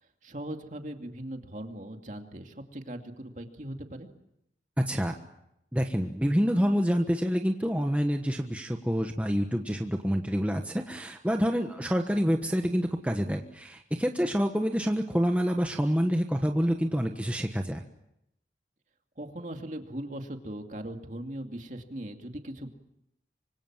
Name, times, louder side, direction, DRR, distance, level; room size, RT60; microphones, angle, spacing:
voice 1, 0.2-4.1 17.1-17.2 19.2-22.7, right 1 dB, 45° right, 4 dB, 2.5 m, -39 dB
voice 2, 4.8-5.1 5.7-17.8, equal, 10° right, 3 dB, 1.3 m, -27 dB
25.5 x 25.5 x 7.5 m, 0.83 s
head